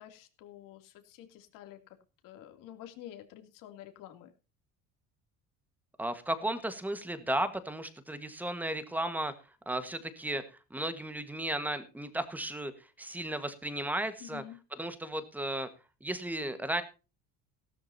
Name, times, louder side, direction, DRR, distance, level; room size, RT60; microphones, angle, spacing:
voice 1, 0.0-2.0 2.2-4.3 14.2-14.6, left 12 dB, 75° left, 6 dB, 2.9 m, -49 dB
voice 2, 6.0-9.3 9.6-10.4 10.7-14.4 14.8-15.7 16.0-16.8, right 1 dB, 5° right, 11 dB, 1.5 m, -34 dB
17.5 x 12.5 x 2.8 m, 0.32 s
cardioid pair, 170°, 33 cm